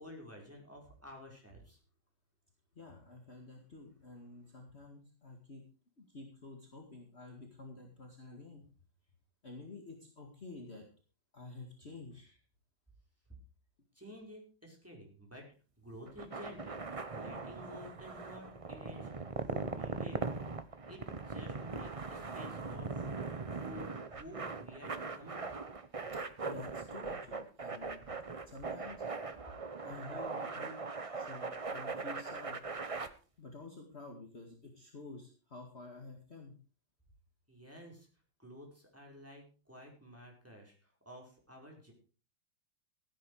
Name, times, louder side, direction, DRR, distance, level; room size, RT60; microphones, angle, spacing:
voice 1, 0.0-1.8 13.9-15.5 15.8-19.1 19.4-20.3 20.9-25.5 37.5-38.1 38.4-41.9, equal, 5° right, -1 dB, 4.8 m, -51 dB
voice 2, 2.7-5.6 6.0-8.6 9.4-10.8 11.3-12.3 26.4-28.2 28.5-29.0 29.8-30.8 31.2-32.6 33.4-36.5, left 3 dB, 35° left, 1 dB, 2.2 m, -50 dB
sound 1, 16.1-33.1, right 4 dB, 40° right, 0.4 m, -40 dB
16.5 x 9.9 x 4.8 m, 0.37 s
omnidirectional pair, 2.1 m